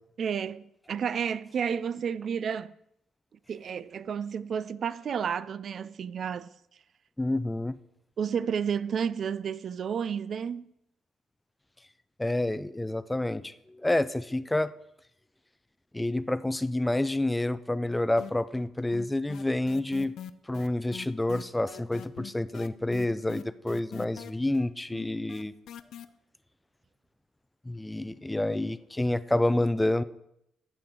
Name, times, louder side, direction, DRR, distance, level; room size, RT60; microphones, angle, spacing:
voice 1, 0.2-2.7 3.5-6.5 8.2-10.7, right 7 dB, 55° right, 0.4 m, -31 dB
voice 2, 7.2-7.8 12.2-14.7 15.9-20.1 20.5-25.5 27.7-30.0, left 1 dB, 10° left, 0.4 m, -28 dB
sound 1, 18.2-18.7 18.9-26.0, left 9 dB, 75° left, 0.5 m, -43 dB
13.0 x 7.7 x 3.8 m
cardioid pair, 90°, 0 cm